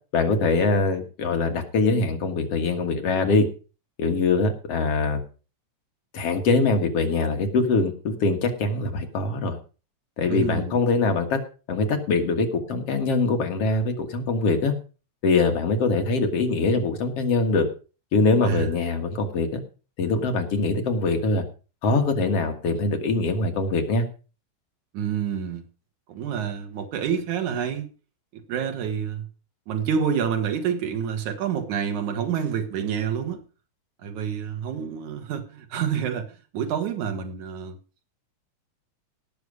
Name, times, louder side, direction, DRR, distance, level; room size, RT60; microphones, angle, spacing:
voice 1, 0.1-3.5 4.0-5.2 6.1-9.6 10.2-11.4 11.7-14.7 15.2-17.7 18.1-19.6 20.0-21.4 21.8-24.0, left 3 dB, 55° left, 2.6 m, -23 dB
voice 2, 10.3-10.8 18.4-18.7 24.9-25.6 26.1-27.9 28.3-29.3 29.7-33.4 34.0-36.3 36.5-37.8, right 7 dB, 85° right, 3.1 m, -28 dB
18.0 x 6.9 x 4.9 m
omnidirectional pair, 3.3 m